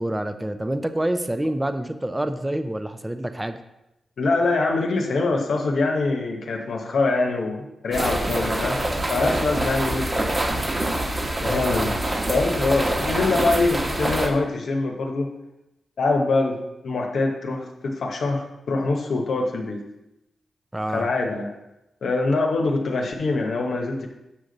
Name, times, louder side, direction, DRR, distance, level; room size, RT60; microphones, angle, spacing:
voice 1, 0.0-3.6 20.7-21.1, right 1 dB, 15° right, 9 dB, 0.6 m, -27 dB
voice 2, 4.2-8.8 9.1-10.3 11.4-12.0 12.3-15.3 16.0-19.8 20.9-21.5 22.0-24.1, left 3 dB, 75° left, 1 dB, 0.9 m, -24 dB
sound 1, 7.9-14.3, right 1 dB, 30° right, 1.3 m, -25 dB
7.3 x 5.1 x 3.9 m, 0.91 s
cardioid pair, 60°, 0 cm